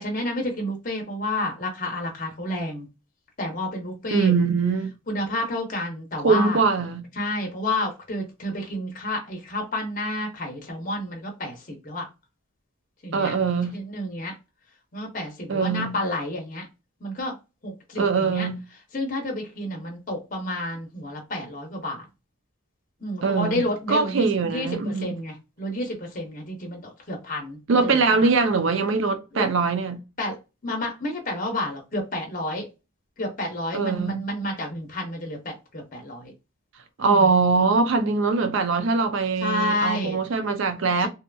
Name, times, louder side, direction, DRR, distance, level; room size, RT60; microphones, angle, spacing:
voice 1, 0.0-2.9 3.4-4.3 5.1-6.6 7.2-12.1 13.0-13.4 13.7-14.4 14.9-16.7 17.0-17.3 17.6-18.5 18.9-22.0 23.0-28.3 29.3-29.5 30.2-30.4 30.6-32.7 33.2-36.3 37.0-37.3 39.4-40.2 41.0-41.1, left 1 dB, 40° left, 0.8 m, -30 dB
voice 2, 4.1-4.9 6.2-7.0 13.1-13.8 15.5-15.9 18.0-18.6 23.2-25.1 27.7-30.0 33.7-34.2 37.0-41.1, right 4 dB, 60° right, 0.4 m, -22 dB
2.7 x 2.4 x 2.2 m
head